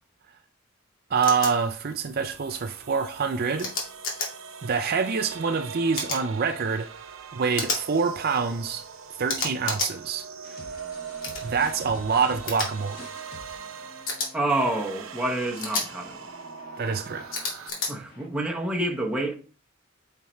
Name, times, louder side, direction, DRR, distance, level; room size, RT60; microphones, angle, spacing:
voice 1, 1.1-3.7 4.6-6.9 7.3-8.8 9.2-10.3 11.4-13.1 16.8-17.3, right 5 dB, 50° right, 0.5 m, -26 dB
sound 1, 1.2-1.5 3.6-4.3 5.9-6.2 7.5-7.8 9.3-9.9 11.2-11.4 12.5-12.7 14.1-14.3 15.6-15.9 17.3-17.9, left 3 dB, 70° left, 2.4 m, -29 dB
sound 2, 1.2-17.7, right 6 dB, 80° right, 0.8 m, -41 dB
sound 3, 10.4-18.3, left 2 dB, 45° left, 1.8 m, -49 dB
voice 2, 14.3-16.3 17.9-19.3, right 1 dB, 5° right, 1.1 m, -28 dB
9.2 x 4.6 x 3.2 m
head